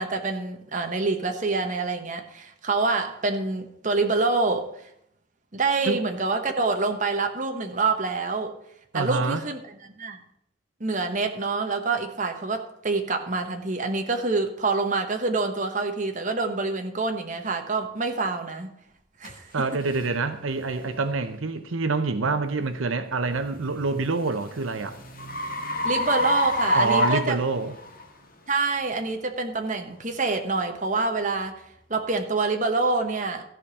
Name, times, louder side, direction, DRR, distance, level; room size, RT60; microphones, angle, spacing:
voice 1, 0.0-4.9 5.5-8.5 8.9-10.2 10.8-18.8 19.2-19.6 25.8-27.4 28.5-31.6 31.9-33.4, right 3 dB, 40° right, 1.1 m, -26 dB
voice 2, 8.9-9.4 19.5-25.0 26.7-27.7, right 4 dB, 85° right, 0.8 m, -26 dB
sound 1, 19.2-19.3 19.9-20.1 20.7-20.9 23.6-28.0, left 2 dB, 45° left, 1.7 m, -27 dB
14.0 x 5.1 x 7.0 m
head